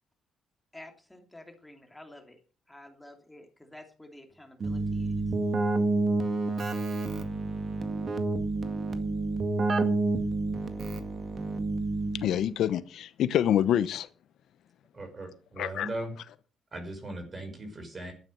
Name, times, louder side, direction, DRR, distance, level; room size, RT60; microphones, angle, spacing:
voice 1, 0.7-2.4 2.7-5.1, left 1 dB, 10° left, 4 dB, 3.1 m, -50 dB
Keyboard (musical), 4.6-12.5, right 3 dB, 50° right, 1.9 m, -29 dB
voice 2, 12.1-14.1 15.6-15.9, left 10 dB, 75° left, 14 dB, 0.8 m, -26 dB
voice 3, 14.9-16.1 16.7-18.1, right 1 dB, 35° right, 7 dB, 5.8 m, -38 dB
12.5 x 9.2 x 6.7 m, 0.38 s
cardioid pair, 90°, 0 cm